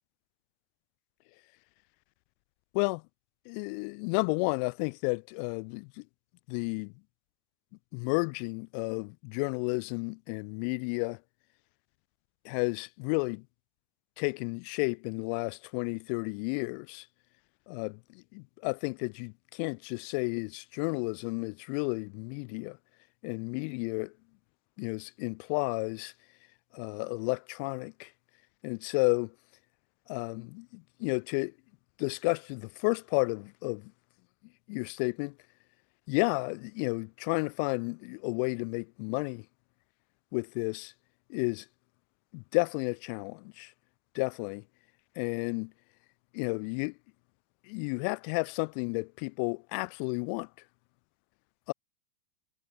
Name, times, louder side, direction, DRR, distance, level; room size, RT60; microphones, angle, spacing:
voice 1, 3.5-6.0 6.5-6.9 7.9-11.2 12.4-13.5 14.2-17.1 17.7-22.8 23.2-24.1 24.8-26.1 26.7-28.1 28.6-29.3 30.1-31.5 32.0-33.9 34.7-35.4 36.1-39.5 40.3-40.9 41.3-41.7 42.3-43.7 44.1-44.6 45.2-45.7 46.3-47.0 47.6-50.5 51.7-51.8, left 38 dB, 50° left, 0.6 m, -32 dB
supercardioid pair, 145°, 8 cm